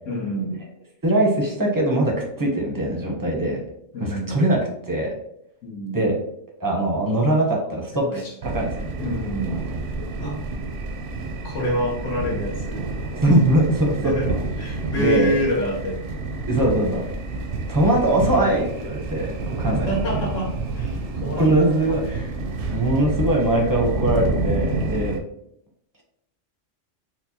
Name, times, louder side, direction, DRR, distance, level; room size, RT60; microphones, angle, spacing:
voice 1, 0.1-0.6 3.9-4.4 5.6-6.1 7.9-8.3 9.0-9.6 10.2-10.4 11.4-12.9 14.0-14.3 14.6-16.0 19.7-22.0, equal, 80° left, -1 dB, 1.4 m, -27 dB
voice 2, 1.0-3.6 4.0-4.6 4.9-5.1 5.9-6.1 6.6-8.9 13.2-14.1 15.0-15.3 16.5-17.0 17.7-20.1 21.4-22.3 22.7-25.2, right 1 dB, 20° right, -1 dB, 0.6 m, -21 dB
sound 1, 8.4-25.2, right 3 dB, 75° right, 0.9 m, -29 dB
4.4 x 2.2 x 2.7 m, 0.73 s
omnidirectional pair, 1.3 m